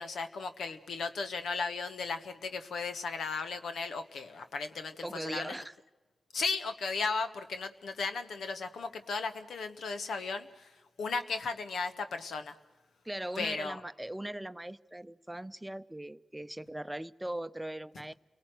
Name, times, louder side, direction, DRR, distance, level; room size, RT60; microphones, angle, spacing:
voice 1, 0.0-5.5 6.3-10.7 11.0-12.5 13.4-13.8, left 4 dB, 85° left, 8 dB, 1.3 m, -35 dB
voice 2, 5.0-5.7 13.0-18.1, right 1 dB, 15° right, 14 dB, 0.7 m, -39 dB
29.5 x 19.0 x 7.9 m, 1.2 s
supercardioid pair, 40°, 0 cm